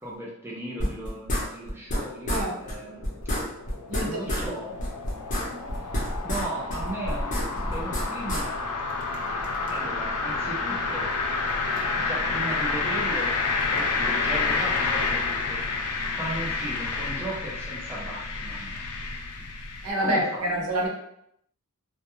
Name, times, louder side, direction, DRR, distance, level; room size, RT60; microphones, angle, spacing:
voice 1, 0.0-3.1 4.0-4.8 6.2-8.5 9.7-11.1 12.0-13.3 13.7-15.6 16.1-18.8 20.0-20.7, right 1 dB, 10° right, -5 dB, 0.4 m, -36 dB
sound 1, 0.8-2.0 2.3-2.4 2.7-2.8 3.0-4.5 4.8-6.4 6.7-8.4, equal, 35° left, 0.7 m, -28 dB
sound 2, 2.6-19.9, left 3 dB, 85° left, 0.4 m, -29 dB
voice 2, 3.9-4.6 5.5-5.7 19.8-20.9, right 1 dB, 75° right, -1 dB, 0.7 m, -28 dB
2.2 x 2.1 x 2.9 m, 0.74 s
head